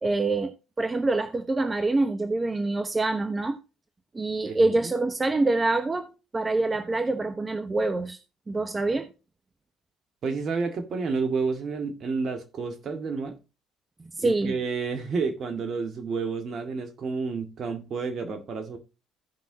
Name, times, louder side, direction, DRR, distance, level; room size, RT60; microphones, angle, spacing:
voice 1, 0.0-3.6 4.1-8.2 8.5-9.1 14.0-14.5, right 2 dB, 25° right, 1.0 m, -26 dB
voice 2, 4.5-4.9 10.2-13.4 14.2-18.8, right 4 dB, 55° right, 1.9 m, -30 dB
15.5 x 5.6 x 2.9 m
hypercardioid pair, 65°, 0 cm